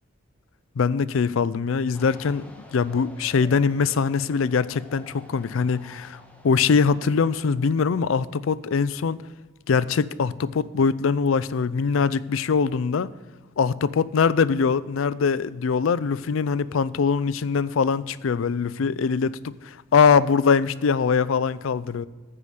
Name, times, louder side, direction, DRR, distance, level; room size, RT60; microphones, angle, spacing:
voice 1, 0.8-2.4 2.7-9.2 9.7-13.1 13.6-22.1, left 5 dB, 90° left, 0.4 m, -22 dB
sound 1, 1.9-9.3, equal, 5° left, 1.2 m, -50 dB
14.5 x 4.9 x 6.6 m
head